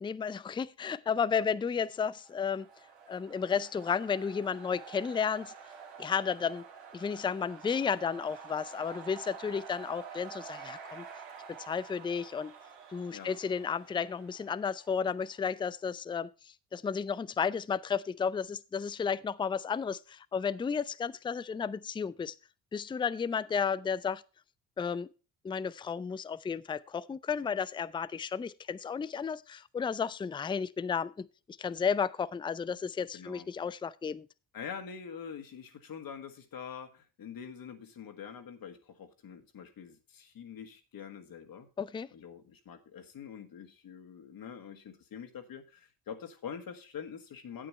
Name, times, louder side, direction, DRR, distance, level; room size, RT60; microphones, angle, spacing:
voice 1, 0.0-2.7 3.1-5.5 6.0-6.6 6.9-11.0 11.6-12.5 12.9-16.3 16.7-22.3 22.7-24.2 24.8-25.1 25.4-31.3 31.6-34.3 41.8-42.1, left 6 dB, 10° left, 0.4 m, -33 dB
sound 1, 1.7-15.5, right 6 dB, 80° right, 2.1 m, -49 dB
voice 2, 33.1-33.5 34.5-41.7 42.1-47.7, left 7 dB, 50° left, 1.8 m, -45 dB
8.9 x 8.6 x 4.4 m
hypercardioid pair, 50°, 44 cm